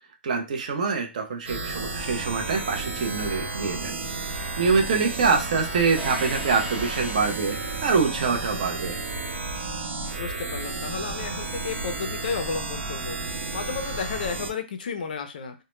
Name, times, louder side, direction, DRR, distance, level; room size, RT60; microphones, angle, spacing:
voice 1, 0.2-9.0, right 5 dB, 40° right, 3 dB, 0.4 m, -25 dB
sound 1, 1.5-14.5, right 3 dB, 90° right, 0.6 m, -32 dB
sound 2, 6.0-8.2, equal, 10° left, 0.8 m, -38 dB
voice 2, 10.2-15.5, left 5 dB, 45° left, 7 dB, 0.4 m, -33 dB
2.0 x 2.0 x 3.0 m, 0.28 s
hypercardioid pair, 175°, 6 cm